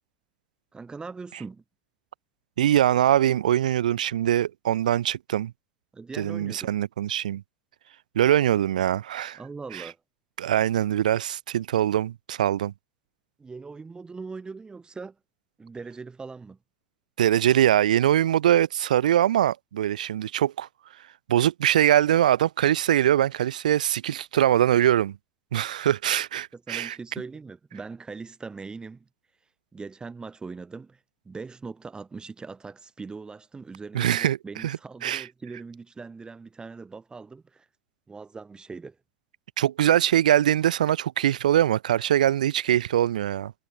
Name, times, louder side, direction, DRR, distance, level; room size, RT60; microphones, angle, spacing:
voice 1, 0.7-1.6 5.9-6.7 9.4-10.0 13.4-15.2 15.6-16.6 26.5-29.1 29.7-37.7 38.1-39.0, right 4 dB, 20° right, 3.1 m, -40 dB
voice 2, 2.6-5.5 6.2-7.4 8.1-9.4 9.7-9.9 10.4-12.7 17.2-20.7 21.3-25.2 25.5-27.0 33.9-35.3 39.6-43.5, right 11 dB, 80° right, 0.8 m, -22 dB
hypercardioid pair, 75°, 4 cm